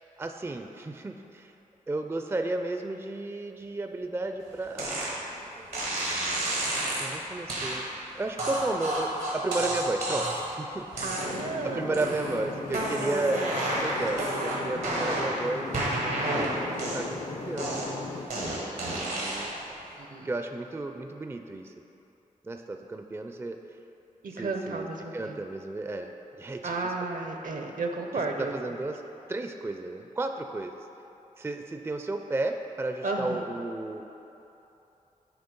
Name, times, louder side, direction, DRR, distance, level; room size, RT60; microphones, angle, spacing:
voice 1, 0.2-1.5 1.9-5.2 5.4-5.8 7.0-11.1 11.6-13.4 13.8-17.9 18.9-19.5 20.2-21.7 22.4-23.6 24.3-24.9 25.1-26.8 28.4-28.9 29.3-30.8 31.4-34.0, right 2 dB, 15° right, 5 dB, 0.4 m, -33 dB
sound 1, 4.8-5.1 5.7-7.1 7.5-7.8 8.4-10.5 10.9-11.6 11.9-12.4 12.7-15.4 15.7-17.2 17.6-19.6, right 1 dB, 85° right, 1.4 m, -30 dB
voice 2, 11.0-12.7 20.0-20.3 24.2-25.4 26.6-28.5 33.0-33.4, right 3 dB, 65° right, 3 dB, 0.7 m, -34 dB
sound 2, 11.2-18.3, left 3 dB, 55° left, 0.5 m, -38 dB
8.0 x 3.1 x 5.3 m, 3.0 s
cardioid pair, 45°, 15 cm